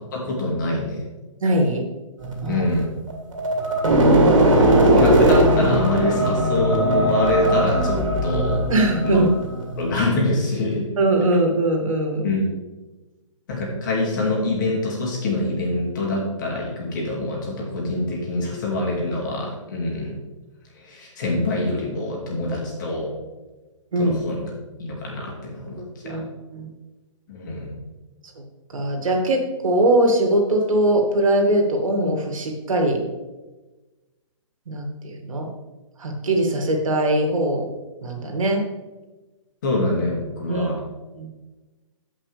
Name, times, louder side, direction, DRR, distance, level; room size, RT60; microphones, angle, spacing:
voice 1, 0.1-1.0 2.5-2.9 4.4-8.6 9.1-9.2 9.8-11.0 12.2-12.5 13.5-20.2 20.7-23.2 24.0-24.5 24.8-26.3 27.3-27.7 39.6-40.8, left 2 dB, 35° left, -2 dB, 2.4 m, -25 dB
voice 2, 1.4-1.8 2.4-2.6 8.7-9.3 11.0-12.2 23.9-24.1 25.8-26.7 28.7-33.0 34.7-35.5 36.0-37.7 38.0-38.7 40.5-40.7 41.2-41.3, right 1 dB, 90° right, 2 dB, 2.3 m, -21 dB
sound 1, 2.2-10.0, right 1 dB, 70° right, 2.8 m, -19 dB
15.5 x 5.4 x 3.4 m, 1.2 s
hypercardioid pair, 170°, 17 cm